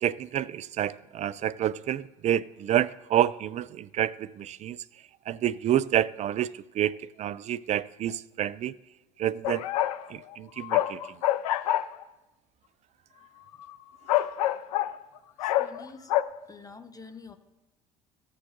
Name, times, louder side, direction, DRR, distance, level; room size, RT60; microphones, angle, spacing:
voice 1, 0.0-4.8 5.3-8.8 9.2-9.7 10.1-11.0, right 11 dB, 35° right, 0.4 m, -28 dB
sound 1, 9.4-10.1 10.3-12.0 13.6-13.7 14.1-14.9 15.4-15.8 16.1-16.2, left 13 dB, 80° left, 0.4 m, -26 dB
voice 2, 15.4-16.1 16.5-17.4, left 4 dB, 20° left, 1.0 m, -47 dB
14.5 x 6.6 x 2.7 m
hypercardioid pair, 60°, 19 cm